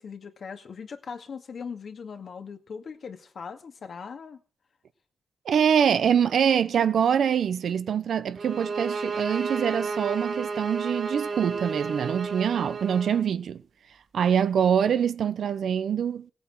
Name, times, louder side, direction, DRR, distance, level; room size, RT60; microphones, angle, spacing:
voice 1, 0.0-4.4, left 6 dB, 65° left, 2.1 m, -40 dB
voice 2, 5.5-13.6 14.1-16.3, right 8 dB, 80° right, 0.9 m, -24 dB
sound 1, 8.4-13.3, right 4 dB, 65° right, 2.2 m, -32 dB
17.0 x 8.5 x 7.7 m
cardioid pair, 75°, 0 cm